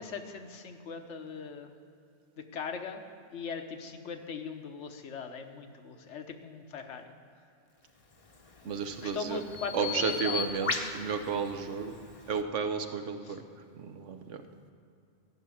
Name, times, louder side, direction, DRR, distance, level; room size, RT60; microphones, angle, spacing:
voice 1, 0.0-1.7 2.5-3.0 3.3-7.1 9.0-10.4 13.2-13.4, left 5 dB, 70° left, 6 dB, 1.2 m, -40 dB
Bird vocalization bird call bird song, 8.2-12.4, left 5 dB, 30° left, 0.8 m, -38 dB
voice 2, 8.6-9.4 9.7-11.9 12.3-13.4 13.7-14.4, right 5 dB, 75° right, 7 dB, 1.2 m, -32 dB
13.5 x 6.0 x 8.4 m, 2.6 s
omnidirectional pair, 1.3 m